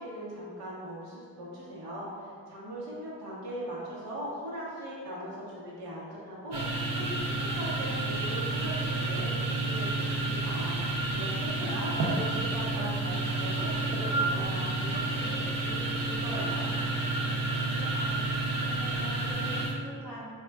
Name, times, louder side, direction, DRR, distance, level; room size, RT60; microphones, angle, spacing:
voice 1, 0.0-9.9 10.2-16.7, equal, 85° right, -7 dB, 1.0 m, -40 dB
sound 1, 6.5-19.7, right 2 dB, 60° right, 0.6 m, -30 dB
voice 2, 11.4-12.0 17.5-18.2 18.6-20.3, equal, 5° left, -10 dB, 0.9 m, -45 dB
3.5 x 2.3 x 2.3 m, 2.1 s
cardioid pair, 100°, 38 cm